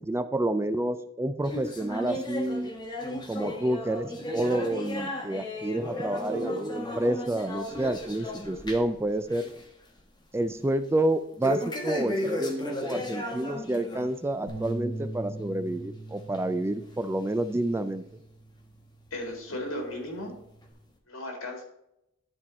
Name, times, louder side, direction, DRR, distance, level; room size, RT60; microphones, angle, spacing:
voice 1, 0.0-2.7 3.3-9.5 10.3-18.0, right 1 dB, 15° right, 12 dB, 0.3 m, -29 dB
sound 1, 1.4-9.0 9.3-9.6 10.0-10.1 11.4-14.1 14.5-14.7 15.4-15.5 16.3-16.4 17.2-17.3, left 1 dB, 20° left, 1.1 m, -34 dB
sound 2, 14.5-20.7, right 2 dB, 50° left, 1.8 m, -42 dB
voice 2, 19.1-20.3 21.1-21.6, left 1 dB, 85° left, 2 dB, 2.4 m, -35 dB
11.0 x 4.5 x 4.2 m, 0.81 s
head